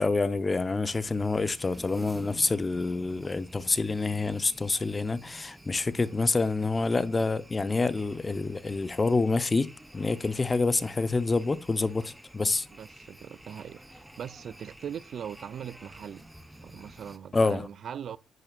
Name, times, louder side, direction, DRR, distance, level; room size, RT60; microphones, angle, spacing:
voice 1, 0.0-12.7 17.3-17.7, left 3 dB, 25° left, 0.9 m, -27 dB
sound 1, 0.9-17.2, right 1 dB, 5° right, 1.0 m, -50 dB
voice 2, 12.7-16.3 16.6-18.2, right 8 dB, 60° right, 0.6 m, -40 dB
10.5 x 9.7 x 2.5 m
cardioid pair, 90°, 0 cm